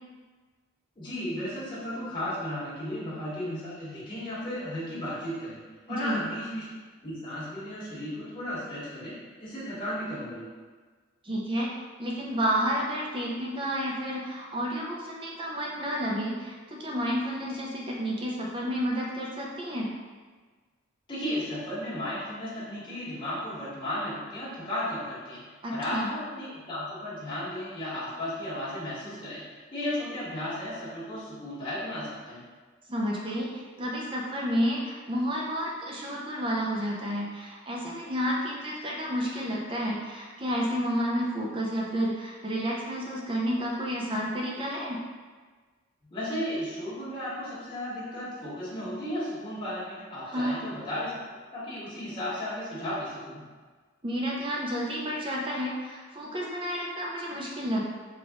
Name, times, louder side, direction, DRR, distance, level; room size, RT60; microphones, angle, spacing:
voice 1, 1.0-5.6 5.9-6.7 7.0-10.5 21.1-25.4 25.7-32.4 46.1-51.2 51.5-53.4, left 1 dB, 20° left, -10 dB, 1.5 m, -34 dB
voice 2, 5.9-6.2 11.2-11.7 12.0-19.9 25.6-26.1 32.9-45.0 50.3-50.5 54.0-57.9, equal, 25° right, -3 dB, 0.5 m, -30 dB
5.1 x 2.4 x 3.6 m, 1.4 s
head